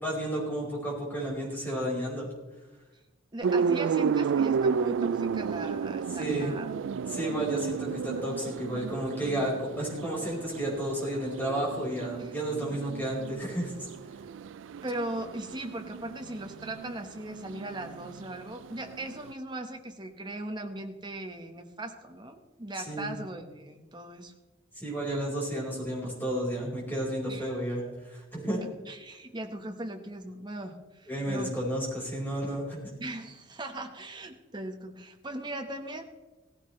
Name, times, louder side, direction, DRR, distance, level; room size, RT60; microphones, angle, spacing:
voice 1, 0.0-2.3 6.1-6.5 7.1-13.7 22.8-23.1 24.7-28.6 31.1-32.9, right 1 dB, 10° left, -4 dB, 4.8 m, -32 dB
voice 2, 3.3-6.7 12.2-12.3 12.7-12.8 14.8-24.3 27.3-27.5 28.6-31.5 33.0-36.0, right 1 dB, 20° right, 4 dB, 1.2 m, -39 dB
sound 1, 3.4-19.3, right 6 dB, 65° right, 0.3 m, -33 dB
16.5 x 15.5 x 3.2 m, 1.1 s
head